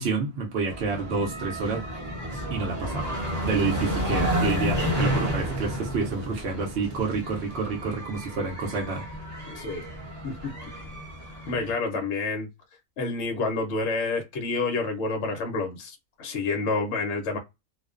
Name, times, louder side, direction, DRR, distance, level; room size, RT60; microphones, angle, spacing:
voice 1, 0.0-1.8 2.3-3.1 3.4-9.0, right 4 dB, 60° right, 0.7 m, -29 dB
sound 1, 0.7-11.7, equal, 15° right, 0.9 m, -31 dB
voice 2, 9.5-9.8 10.2-10.8 11.5-12.5 13.0-17.4, left 3 dB, 60° left, 0.8 m, -29 dB
2.4 x 2.1 x 2.4 m
omnidirectional pair, 1.5 m